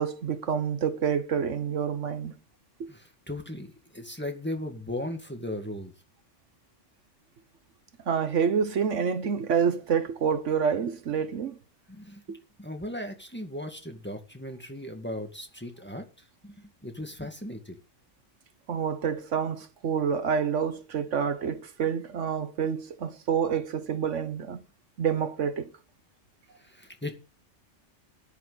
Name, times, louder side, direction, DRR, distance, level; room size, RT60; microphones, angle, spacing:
voice 1, 0.0-2.3 2.8-2.9 8.1-11.5 12.3-12.4 18.7-24.6 25.0-25.7, right 7 dB, 70° right, 1.3 m, -28 dB
voice 2, 2.9-5.9 11.9-16.1 16.4-17.8 26.6-27.1, left 1 dB, 10° left, 1.9 m, -37 dB
13.5 x 10.5 x 4.0 m
omnidirectional pair, 1.3 m